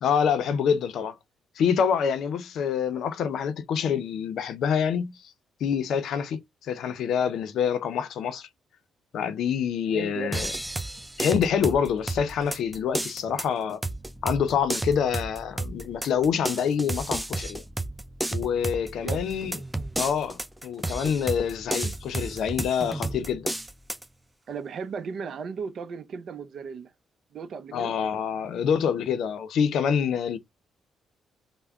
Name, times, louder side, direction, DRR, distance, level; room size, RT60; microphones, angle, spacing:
voice 1, 0.0-1.2 1.6-5.2 5.6-8.5 9.1-10.5 11.2-13.8 14.2-17.6 18.3-19.6 20.0-23.5 27.7-30.4, left 7 dB, 75° left, 0.5 m, -26 dB
voice 2, 9.9-10.3 19.0-19.2 24.5-26.9 27.3-27.9, right 5 dB, 60° right, 0.5 m, -35 dB
sound 1, 10.3-24.0, right 2 dB, 10° right, 0.5 m, -33 dB
3.4 x 2.1 x 3.6 m
cardioid pair, 90°, 0 cm